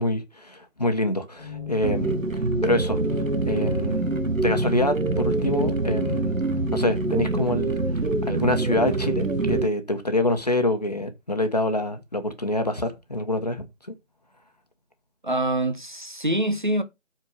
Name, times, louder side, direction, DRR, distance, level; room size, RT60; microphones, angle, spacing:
voice 1, 0.0-2.2 2.6-3.0 3.4-4.0 4.4-6.3 6.7-7.7 8.3-13.7, left 1 dB, 30° left, 1.3 m, -26 dB
sound 1, 1.4-7.4, left 7 dB, 5° right, 1.9 m, -37 dB
sound 2, 1.8-9.7, right 3 dB, 85° right, 1.5 m, -25 dB
voice 2, 15.2-16.8, right 1 dB, 40° right, 1.0 m, -25 dB
8.1 x 4.4 x 6.4 m
figure-of-eight pair, 170°, 39 cm